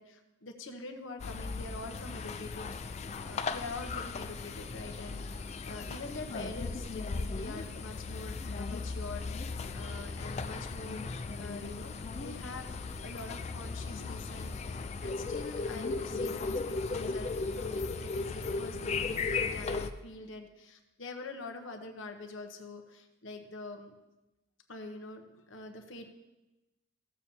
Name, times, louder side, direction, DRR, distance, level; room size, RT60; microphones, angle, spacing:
voice 1, 0.0-11.0 11.3-12.7 13.0-23.9 24.7-26.1, left 2 dB, 65° left, 5 dB, 1.0 m, -45 dB
sound 1, 1.2-19.9, left 4 dB, 30° left, 0.3 m, -36 dB
15.5 x 7.0 x 2.9 m, 1.0 s
head